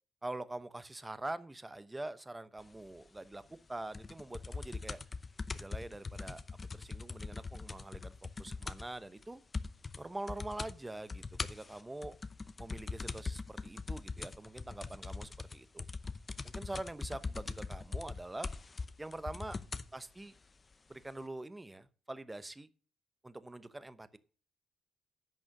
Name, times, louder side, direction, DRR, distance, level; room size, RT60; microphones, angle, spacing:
voice 1, 0.2-3.4 3.7-5.0 5.5-6.4 6.7-8.1 8.4-9.4 10.0-12.2 12.6-15.9 16.4-18.5 19.0-19.6 19.9-20.3 20.9-22.7 23.2-24.2, right 2 dB, 15° right, 14 dB, 0.9 m, -44 dB
sound 1, 3.9-9.0 9.2-9.3 9.5-10.0 10.3-10.7 11.1-19.9 20.7-20.8, left 4 dB, 30° left, 0.7 m, -41 dB
10.5 x 6.3 x 6.5 m, 0.39 s
cardioid pair, 90°, 0 cm